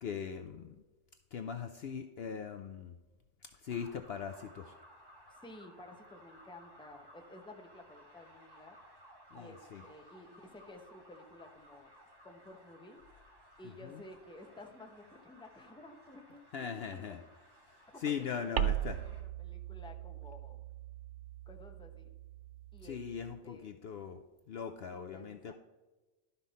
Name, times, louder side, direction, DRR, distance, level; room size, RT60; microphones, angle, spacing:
voice 1, 0.0-0.8 1.3-3.0 3.4-4.7 9.3-9.8 13.8-14.0 16.5-17.2 18.0-19.0 22.8-24.2 24.5-25.5, left 7 dB, 60° left, 7 dB, 0.7 m, -40 dB
sound 1, 3.7-19.2, right 1 dB, 20° right, 1.5 m, -59 dB
voice 2, 5.3-8.8 9.3-11.9 12.2-13.0 13.6-17.2 17.9-20.6 21.5-22.1 22.7-23.0 23.4-24.0 24.9-25.5, left 2 dB, 5° left, 3 dB, 0.8 m, -53 dB
sound 2, 18.6-23.4, right 12 dB, 70° right, 0.9 m, -39 dB
12.0 x 5.6 x 4.1 m, 1.2 s
omnidirectional pair, 1.3 m